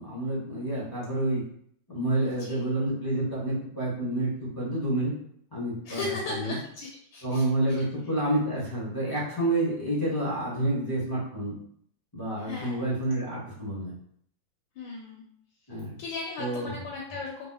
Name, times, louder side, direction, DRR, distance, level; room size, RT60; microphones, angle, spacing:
voice 1, 0.0-1.4 1.9-5.1 5.5-6.6 7.2-11.6 12.1-13.9 15.7-16.0 16.4-16.7, right 1 dB, 20° left, -8 dB, 0.5 m, -29 dB
voice 2, 2.2-2.6 5.9-7.8 12.4-12.8 14.8-15.2 16.0-17.5, left 3 dB, 85° left, -2 dB, 1.3 m, -37 dB
3.2 x 2.8 x 2.3 m, 0.67 s
omnidirectional pair, 2.0 m